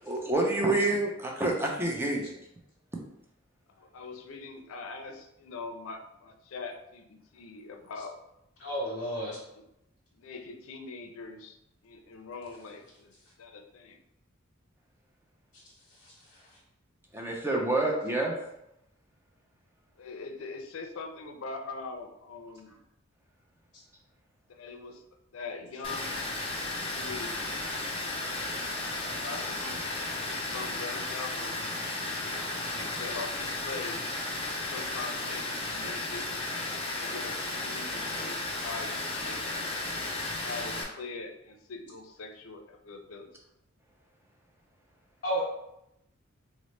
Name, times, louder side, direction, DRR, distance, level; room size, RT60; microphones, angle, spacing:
voice 1, 0.0-2.3 17.1-18.4, right 2 dB, 10° right, -1 dB, 0.5 m, -28 dB
voice 2, 3.8-8.2 9.3-9.6 10.1-11.6 11.8-13.1 13.4-14.0 20.0-22.8 24.5-25.0 25.3-26.2 26.8-27.6 29.2-31.6 32.7-34.1 34.5-36.3 36.9-39.7 40.4-43.3 45.3-45.4, left 4 dB, 75° left, 5 dB, 0.5 m, -42 dB
voice 3, 8.6-9.4 16.0-16.4 23.7-23.8 45.2-45.4, right 1 dB, 55° left, -6 dB, 0.9 m, -33 dB
Water, 25.8-40.8, left 2 dB, 25° left, 0.6 m, -34 dB
3.9 x 2.1 x 3.1 m, 0.83 s
head